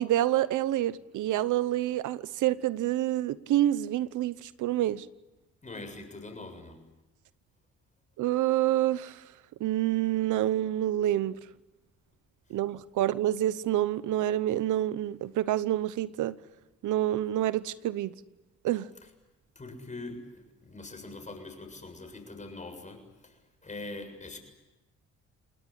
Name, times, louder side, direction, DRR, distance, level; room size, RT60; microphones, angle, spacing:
voice 1, 0.0-5.1 8.2-9.2 9.6-11.4 12.5-16.4 16.8-18.1 18.6-18.9, right 13 dB, 85° right, 0.9 m, -27 dB
voice 2, 5.6-6.8 19.6-24.4, left 2 dB, 25° left, 7.3 m, -43 dB
28.5 x 19.5 x 10.0 m
cardioid pair, 90°, 30 cm